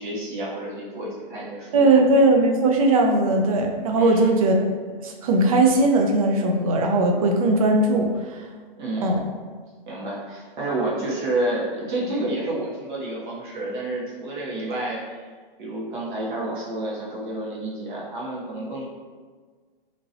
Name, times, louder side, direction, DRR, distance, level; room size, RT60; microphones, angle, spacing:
voice 1, 0.0-1.8 3.9-4.4 8.8-9.2 9.9-15.0 15.6-18.8, right 2 dB, 55° right, -5 dB, 1.2 m, -29 dB
voice 2, 1.7-4.6 5.0-8.4 9.0-9.2, right 2 dB, 40° right, 2 dB, 0.4 m, -19 dB
2.9 x 2.8 x 2.7 m, 1.5 s
hypercardioid pair, 145°, 29 cm